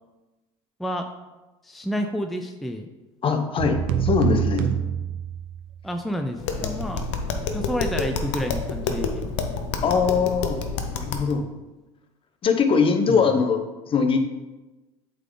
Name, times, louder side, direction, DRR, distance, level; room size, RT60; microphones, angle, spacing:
voice 1, 1.6-2.9 5.8-7.0 7.5-9.3 13.1-13.3, equal, ahead, 5 dB, 0.5 m, -29 dB
voice 2, 3.2-4.6 9.8-10.6 10.9-11.5 12.4-13.6 13.9-14.2, left 5 dB, 35° left, 6 dB, 0.8 m, -21 dB
sound 1, 3.6-5.8, right 8 dB, 70° right, 0.7 m, -25 dB
Tap, 6.4-11.3, left 4 dB, 80° left, 0.7 m, -28 dB
7.9 x 3.8 x 3.8 m, 1.1 s
supercardioid pair, 85°, 15 cm